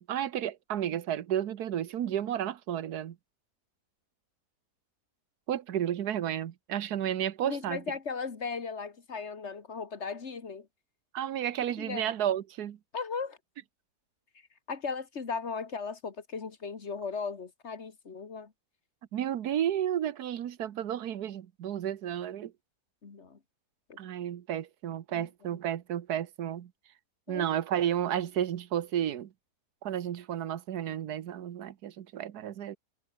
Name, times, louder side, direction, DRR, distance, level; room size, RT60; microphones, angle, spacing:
voice 1, 0.0-3.2 5.5-7.8 11.1-12.8 19.1-22.5 24.0-26.7 27.3-29.3 29.8-32.8, right 10 dB, 75° right, 1.5 m, -32 dB
voice 2, 7.4-10.7 11.8-12.1 12.9-13.4 14.7-18.5 23.0-23.4 23.9-24.0 25.1-25.3 27.3-27.5, left 5 dB, 45° left, 2.1 m, -37 dB
omnidirectional pair, 1.7 m